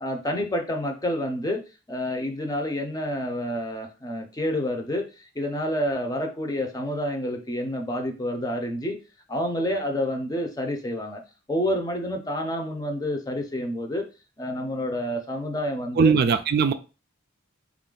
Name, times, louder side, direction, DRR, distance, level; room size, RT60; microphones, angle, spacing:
voice 1, 0.0-1.6 1.9-9.0 9.3-11.2 11.5-14.1 14.4-16.1, left 1 dB, 20° left, 4 dB, 0.6 m, -28 dB
voice 2, 16.0-16.7, right 5 dB, 50° right, 9 dB, 0.3 m, -19 dB
4.2 x 2.4 x 3.8 m, 0.32 s
head